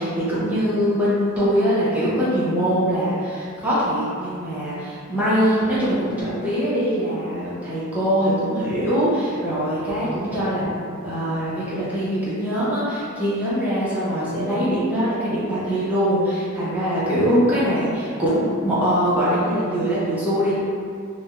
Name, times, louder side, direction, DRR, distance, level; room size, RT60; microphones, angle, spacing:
voice 1, 0.0-20.6, equal, 5° right, -11 dB, 0.5 m, -22 dB
2.4 x 2.1 x 2.8 m, 2.2 s
head